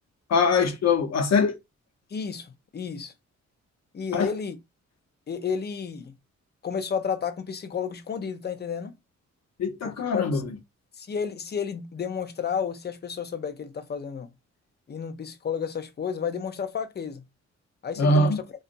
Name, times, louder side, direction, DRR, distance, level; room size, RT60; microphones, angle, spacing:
voice 1, 0.3-1.6 4.1-4.3 9.6-10.4 18.0-18.4, left 3 dB, 60° left, 0.8 m, -22 dB
voice 2, 2.1-3.1 3.9-4.6 5.3-6.1 6.6-8.9 9.8-10.4 11.0-14.3 14.9-17.2 17.8-18.4, left 6 dB, 35° left, 0.6 m, -32 dB
3.7 x 2.4 x 2.6 m
cardioid pair, 90°, 29 cm